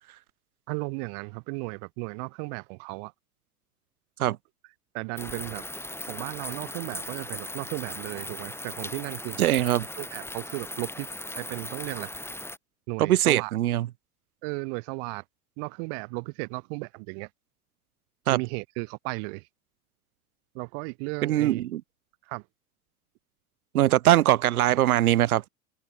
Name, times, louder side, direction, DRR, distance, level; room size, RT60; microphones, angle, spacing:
voice 1, 0.7-3.1 4.9-5.7 6.0-9.4 10.0-11.1 11.3-12.2 12.9-13.6 14.4-15.2 15.6-17.3 18.3-19.5 20.5-21.7 22.2-22.4, right 38 dB, 55° right, 2.3 m, -35 dB
sound 1, 5.2-12.6, left 1 dB, 5° left, 4.0 m, -38 dB
voice 2, 9.4-9.9 13.0-13.9 18.3-18.4 21.2-21.8 23.7-25.4, right 13 dB, 70° right, 1.4 m, -21 dB
figure-of-eight pair, 80°, 45 cm